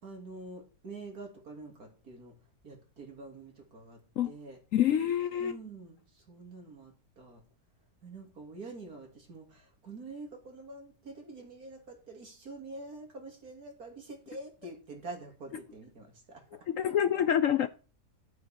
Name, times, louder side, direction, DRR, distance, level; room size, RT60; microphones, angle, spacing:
voice 1, 0.0-2.3 2.6-4.6 5.4-7.4 8.0-16.4, right 3 dB, 60° right, 3.4 m, -46 dB
voice 2, 4.7-5.6 16.7-17.7, left 10 dB, 65° left, 0.9 m, -27 dB
11.0 x 8.6 x 4.5 m
omnidirectional pair, 1.8 m